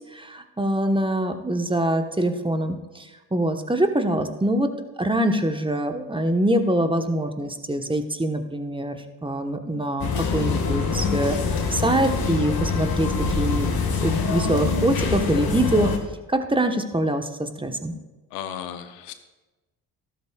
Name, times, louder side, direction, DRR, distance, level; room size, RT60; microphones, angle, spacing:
voice 1, 0.1-4.7 5.0-13.7 14.0-15.9 16.3-17.9, right 1 dB, 10° right, 6 dB, 1.1 m, -24 dB
sound 1, 10.0-16.0, left 5 dB, 50° left, 1.8 m, -24 dB
voice 2, 18.3-19.1, left 9 dB, 85° left, 9 dB, 0.8 m, -34 dB
13.0 x 12.5 x 2.4 m, 1.1 s
hypercardioid pair, 45°, 46 cm